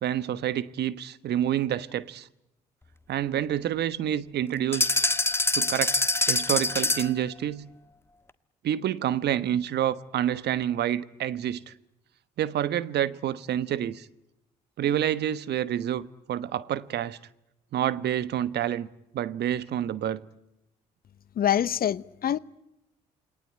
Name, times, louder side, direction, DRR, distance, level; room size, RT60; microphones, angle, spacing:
voice 1, 0.0-2.3 3.1-4.9 5.5-5.9 6.3-7.7 8.6-11.7 12.4-14.1 14.8-17.2 17.7-18.9 19.1-20.2, right 11 dB, 55° right, 1.2 m, -28 dB
sound 1, 4.7-7.2, left 2 dB, 10° left, 1.6 m, -25 dB
voice 2, 21.4-22.4, left 10 dB, 50° left, 1.0 m, -25 dB
28.5 x 21.5 x 9.0 m
hypercardioid pair, 50°, 20 cm